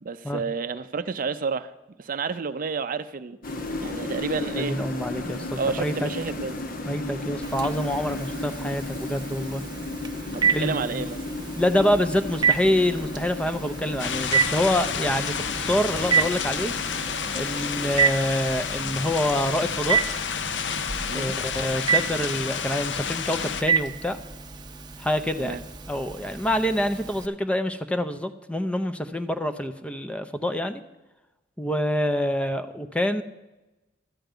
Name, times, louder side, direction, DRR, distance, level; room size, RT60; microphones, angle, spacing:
voice 1, 0.0-1.7 2.0-3.4 3.8-4.8 5.6-6.7 10.3-11.2 21.1-21.4 25.4-25.6, right 5 dB, 50° right, 0.5 m, -30 dB
sound 1, 3.4-18.0, left 2 dB, 50° left, 1.2 m, -34 dB
voice 2, 4.5-6.1 6.9-9.6 10.5-11.0 11.6-16.7 17.3-20.0 21.1-24.2 25.0-25.6 25.9-30.8 31.6-33.2, left 1 dB, 5° left, 0.5 m, -26 dB
Telephone, 7.4-27.3, right 6 dB, 25° right, 0.8 m, -30 dB
sound 2, 14.0-23.6, left 7 dB, 75° left, 0.6 m, -30 dB
13.0 x 5.2 x 9.0 m
head